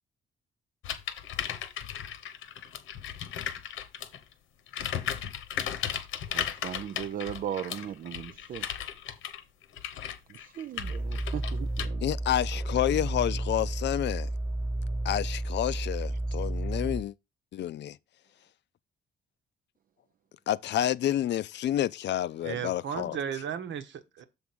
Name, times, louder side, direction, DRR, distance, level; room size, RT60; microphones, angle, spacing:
sound 1, 0.8-4.2 4.7-11.9, left 9 dB, 85° left, 1.0 m, -36 dB
voice 1, 6.3-8.7 10.3-12.1 12.5-12.6, right 9 dB, 45° right, 0.4 m, -37 dB
sound 2, 10.8-17.0, right 1 dB, 5° right, 1.0 m, -32 dB
voice 2, 12.0-14.3 15.0-17.1 17.5-18.0 20.5-23.2, left 12 dB, 60° left, 0.5 m, -29 dB
voice 3, 22.4-24.2, right 8 dB, 70° right, 1.2 m, -35 dB
7.1 x 3.6 x 6.1 m
cardioid pair, 90°, 20 cm